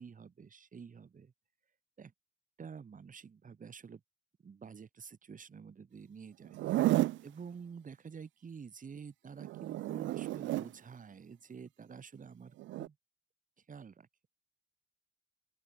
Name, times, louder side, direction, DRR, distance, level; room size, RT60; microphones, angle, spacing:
voice 1, 0.0-1.3 2.0-2.1 2.6-4.0 4.4-6.6 7.2-13.0 13.6-14.1, right 6 dB, 40° right, 5.5 m, -49 dB
Zipper (clothing), 6.5-7.2 9.4-10.7 12.6-12.9, right 15 dB, 70° right, 0.4 m, -32 dB
open air
cardioid pair, 90°, 20 cm